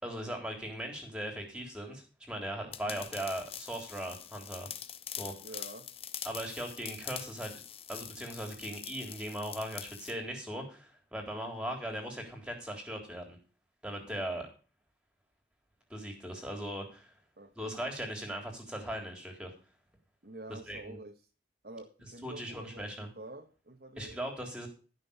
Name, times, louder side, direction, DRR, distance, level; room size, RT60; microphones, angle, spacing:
voice 1, 0.0-4.7 5.2-5.4 6.2-7.5 7.9-13.4 13.8-14.5 15.9-17.1 17.6-19.5 20.5-21.0 22.2-23.1 24.0-24.7, right 1 dB, 5° right, 2 dB, 3.6 m, -39 dB
sound 1, 2.7-10.1, left 10 dB, 35° left, 0.8 m, -44 dB
voice 2, 5.4-5.9 17.4-17.8 20.2-21.3 21.6-24.2, right 2 dB, 60° right, 4 dB, 1.2 m, -48 dB
13.5 x 6.3 x 7.0 m, 0.36 s
head